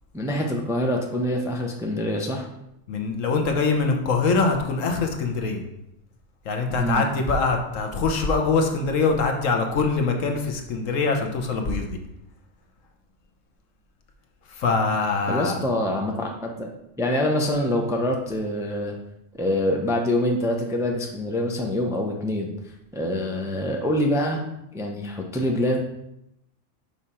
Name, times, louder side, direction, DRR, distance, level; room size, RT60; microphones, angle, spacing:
voice 1, 0.1-2.5 6.7-7.0 15.3-16.7 17.0-18.9 19.4-22.5 22.9-24.4 24.7-25.8, left 1 dB, 5° right, 1 dB, 0.5 m, -25 dB
voice 2, 2.9-5.6 6.4-12.0 14.5-15.6, left 4 dB, 80° left, 3 dB, 1.3 m, -23 dB
5.7 x 4.9 x 4.3 m, 0.84 s
omnidirectional pair, 1.3 m